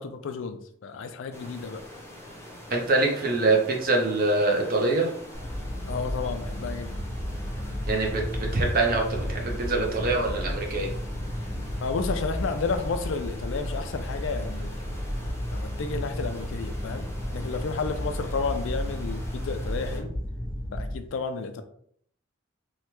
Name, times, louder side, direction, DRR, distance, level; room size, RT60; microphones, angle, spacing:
voice 1, 0.0-1.8 5.9-7.0 11.8-14.9 15.5-17.1 17.3-20.1 20.7-21.6, left 4 dB, 70° left, 0.4 m, -32 dB
sound 1, 1.3-20.0, equal, 15° left, 0.6 m, -44 dB
voice 2, 2.7-5.1 7.9-10.9, right 2 dB, 50° right, 0.7 m, -24 dB
sound 2, 5.3-21.0, equal, 10° right, 1.0 m, -33 dB
3.2 x 2.3 x 2.9 m
head